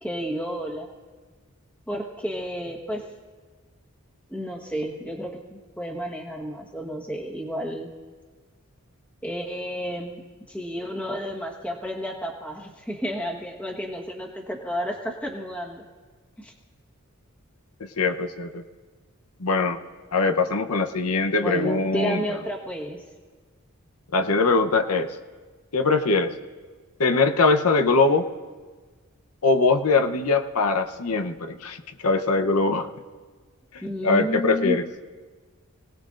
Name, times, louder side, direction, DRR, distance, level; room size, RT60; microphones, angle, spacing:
voice 1, 0.0-0.9 1.9-3.0 4.3-7.9 9.2-10.1 10.5-15.8 16.4-16.5 21.4-23.0 33.8-34.8, equal, 5° left, -1 dB, 1.3 m, -31 dB
voice 2, 17.8-18.6 19.4-19.8 20.1-22.2 24.1-25.1 25.7-26.3 27.0-28.3 29.4-32.9 33.7-34.9, left 3 dB, 85° left, 7 dB, 0.9 m, -22 dB
29.5 x 18.5 x 2.6 m, 1.5 s
head